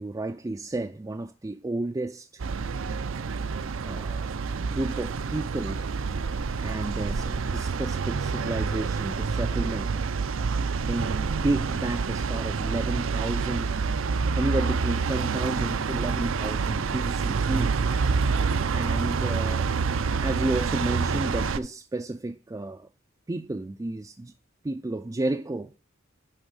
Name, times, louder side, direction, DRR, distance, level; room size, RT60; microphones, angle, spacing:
voice 1, 0.0-2.4 3.8-4.3 4.6-5.9 6.6-10.0 10.9-13.7 14.4-17.8 18.7-19.7 20.2-22.9 23.3-24.3 24.6-25.7, right 2 dB, 15° right, 0.4 m, -31 dB
sound 1, 2.4-21.6, right 5 dB, 75° right, 0.5 m, -27 dB
10.5 x 3.7 x 6.5 m
head